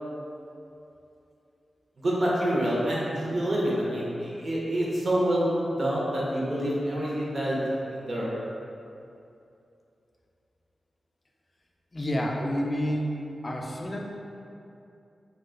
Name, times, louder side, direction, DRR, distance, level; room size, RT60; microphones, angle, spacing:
voice 1, 2.0-5.5 5.8-7.6 7.8-8.3, right 1 dB, 55° right, -5 dB, 0.7 m, -27 dB
voice 2, 11.9-13.1 13.4-14.0, equal, 30° left, 0 dB, 0.4 m, -29 dB
2.6 x 2.2 x 3.7 m, 2.7 s
wide cardioid pair, 80°, 0 cm